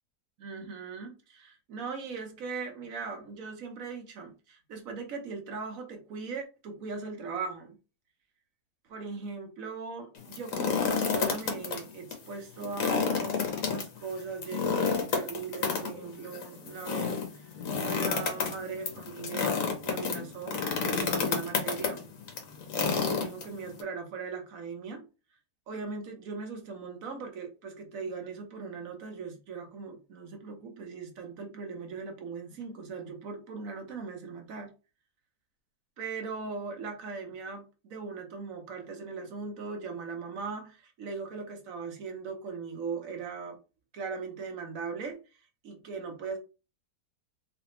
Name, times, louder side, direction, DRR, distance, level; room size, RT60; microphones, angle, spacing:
voice 1, 0.4-7.8 8.9-22.0 22.8-25.0 25.7-34.7 36.0-43.6 43.9-46.4, right 5 dB, 65° right, 1.3 m, -39 dB
sound 1, 10.2-11.8 12.1-12.2 12.6-23.8, left 5 dB, 65° left, 1.2 m, -30 dB
3.5 x 3.3 x 2.9 m
omnidirectional pair, 1.6 m